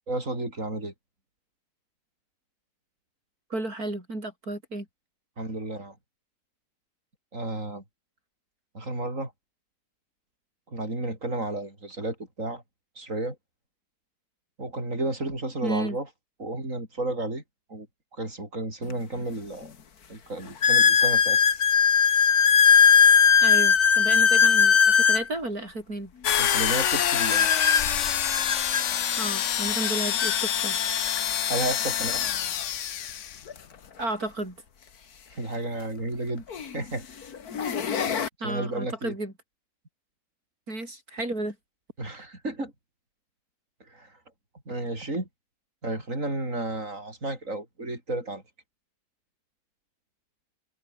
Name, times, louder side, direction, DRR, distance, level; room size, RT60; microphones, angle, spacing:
voice 1, 0.1-0.9 5.4-6.0 7.3-7.8 8.7-9.3 10.7-12.6 13.0-13.4 14.6-16.1 16.4-17.4 17.7-17.9 18.2-19.7 20.1-21.4 26.4-27.5 31.5-32.2 35.3-36.4 36.7-37.0 38.4-39.1 42.0-42.7 43.9-44.1 44.7-45.3 45.8-48.4, right 2 dB, 60° right, 7.4 m, -32 dB
voice 2, 3.5-4.9 15.6-16.0 23.4-26.1 29.2-30.8 34.0-34.6 38.4-39.3 40.7-41.6, right 2 dB, 80° right, 8.0 m, -32 dB
sound 1, 18.9-19.0 19.6-19.7 20.6-25.3 27.2-28.8 29.8-29.9 30.2-30.4 31.2-31.3 33.5-33.6 35.7-35.8 36.5-36.8 37.3-38.3, left 7 dB, 85° left, 2.1 m, -19 dB
sound 2, 26.2-33.4, left 10 dB, 60° left, 1.1 m, -26 dB
omnidirectional pair, 1.6 m